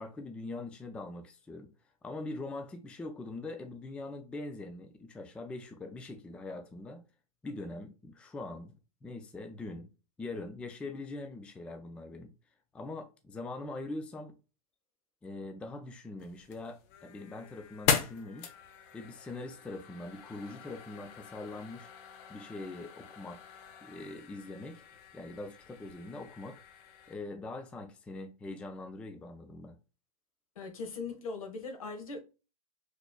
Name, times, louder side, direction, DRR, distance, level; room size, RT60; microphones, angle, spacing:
voice 1, 0.0-1.7 2.0-7.0 7.4-8.7 9.0-9.9 10.2-12.3 12.7-14.3 15.2-18.5 18.9-21.9 22.3-23.4 23.8-24.8 25.1-26.6 27.1-29.8, left 2 dB, 5° left, 0.3 m, -42 dB
sound 1, 16.2-27.1, left 7 dB, 35° left, 0.7 m, -39 dB
voice 2, 30.6-32.2, left 4 dB, 65° left, 1.1 m, -39 dB
4.0 x 3.1 x 2.2 m
figure-of-eight pair, 110°, 19 cm